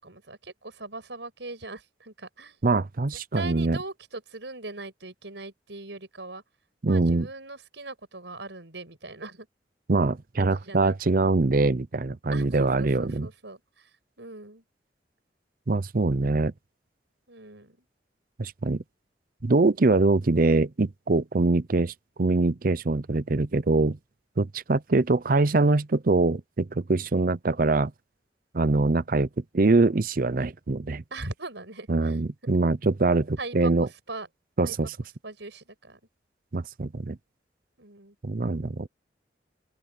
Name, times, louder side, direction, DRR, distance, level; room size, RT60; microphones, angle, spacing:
voice 1, 0.0-2.6 3.3-6.4 6.9-9.5 10.4-11.0 12.3-13.9 14.2-14.6 17.3-17.8 31.1-32.2 33.4-34.3 34.6-34.9 35.2-36.0 37.8-38.2, right 2 dB, 85° right, 6.0 m, -40 dB
voice 2, 2.6-3.8 6.8-7.3 9.9-13.3 15.7-16.5 18.4-18.8 19.4-21.9 22.2-24.0 24.4-27.9 28.5-29.3 29.5-31.0 31.9-33.9 34.6-34.9 36.5-37.2 38.2-38.9, right 3 dB, 50° right, 0.6 m, -23 dB
open air
head